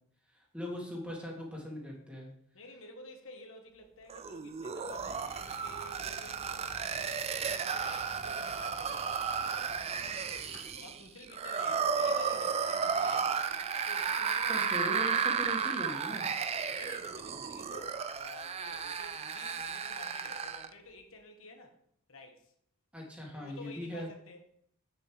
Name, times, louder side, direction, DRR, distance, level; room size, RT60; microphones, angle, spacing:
voice 1, 0.3-2.3 14.5-16.2 22.9-24.1, equal, 5° right, 1.9 m, -40 dB
voice 2, 2.5-9.8 10.7-16.1 16.7-21.8 22.1-22.5 23.3-24.4, left 2 dB, 70° left, 1.4 m, -51 dB
sound 1, 4.1-20.7, right 6 dB, 30° right, 0.3 m, -33 dB
sound 2, 4.8-10.7, left 1 dB, 35° left, 1.8 m, -53 dB
8.1 x 6.8 x 3.4 m
head